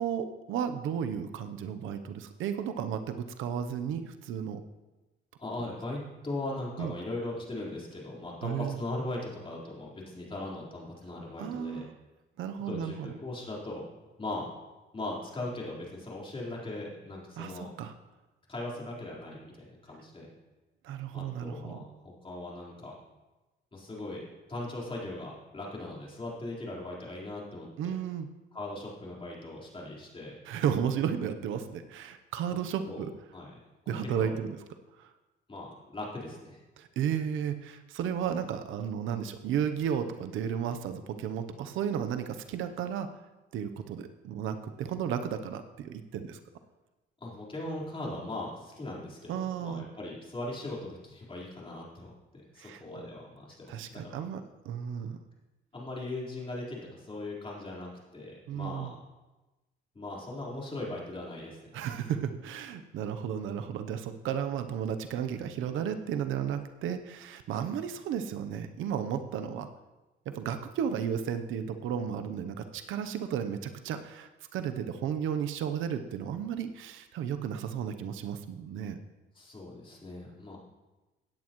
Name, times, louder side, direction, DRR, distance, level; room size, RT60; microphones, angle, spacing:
voice 1, 0.0-4.6 6.8-6.9 8.4-8.8 11.4-11.9 12.4-13.1 17.4-17.9 20.8-21.8 27.8-28.3 30.5-33.1 33.9-34.6 35.0-35.1 36.8-43.1 43.5-46.4 49.3-49.8 52.6-52.8 53.7-55.2 58.5-58.9 61.7-69.7 70.3-79.0, right 8 dB, 85° right, 9 dB, 0.8 m, -33 dB
voice 2, 5.4-11.8 12.7-13.9 14.2-14.5 14.9-17.7 18.5-20.3 21.1-22.9 23.7-24.2 24.5-27.9 28.5-30.3 32.9-33.1 33.3-33.5 33.8-34.3 35.5-36.6 47.2-52.1 52.5-54.2 55.7-58.9 59.9-61.7 79.4-80.6, left 2 dB, 25° left, -4 dB, 4.1 m, -39 dB
16.5 x 9.5 x 3.1 m, 1.1 s
cardioid pair, 90°, 20 cm